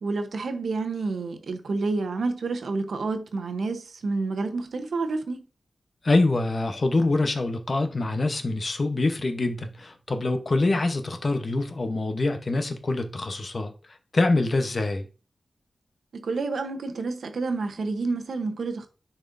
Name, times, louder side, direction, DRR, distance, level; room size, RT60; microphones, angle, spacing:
voice 1, 0.0-5.4 16.1-18.9, right 3 dB, 85° right, 0.9 m, -29 dB
voice 2, 6.0-15.1, left 2 dB, 40° left, 0.9 m, -25 dB
10.0 x 4.3 x 2.6 m
wide cardioid pair, 135°, 0 cm